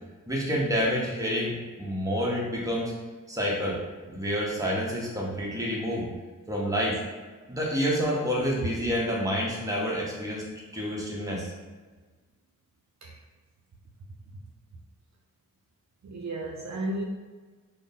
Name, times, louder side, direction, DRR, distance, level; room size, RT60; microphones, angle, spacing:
voice 1, 0.3-2.9 3.3-3.8 4.1-6.1 6.5-7.0 7.5-10.4 10.7-11.5, equal, 10° right, -4 dB, 1.0 m, -28 dB
voice 2, 16.0-17.0, right 1 dB, 55° right, -1 dB, 0.5 m, -33 dB
3.6 x 2.1 x 3.7 m, 1.4 s
cardioid pair, 75°, 33 cm